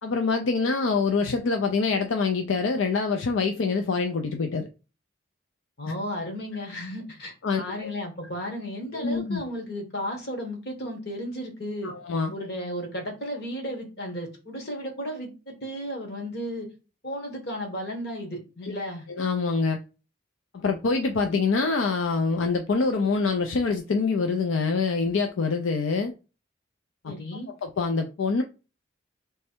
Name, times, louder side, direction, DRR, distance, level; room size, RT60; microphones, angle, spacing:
voice 1, 0.0-4.7 7.4-7.9 8.9-9.4 11.8-12.3 18.6-18.7 19.1-19.8 20.5-26.1 27.0-27.1 27.6-28.4, left 4 dB, 80° left, 0.5 m, -25 dB
voice 2, 5.8-11.9 12.3-16.7 17.0-19.1 27.0-27.5, equal, 55° left, 1.3 m, -34 dB
3.3 x 3.2 x 4.4 m
head